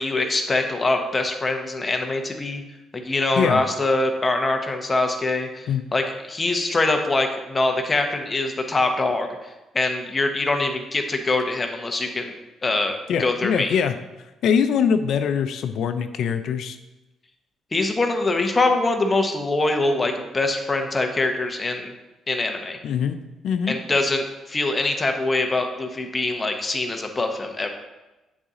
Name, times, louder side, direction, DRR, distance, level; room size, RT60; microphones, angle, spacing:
voice 1, 0.0-2.6 2.9-9.5 9.7-13.7 17.7-21.9 22.3-22.8 23.7-27.7, left 2 dB, 25° left, 4 dB, 0.9 m, -24 dB
voice 2, 13.1-13.9 14.4-16.8 22.8-23.2 23.4-23.7, left 7 dB, 75° left, 9 dB, 0.5 m, -22 dB
8.6 x 4.0 x 3.7 m, 1.1 s
cardioid pair, 90°, 0 cm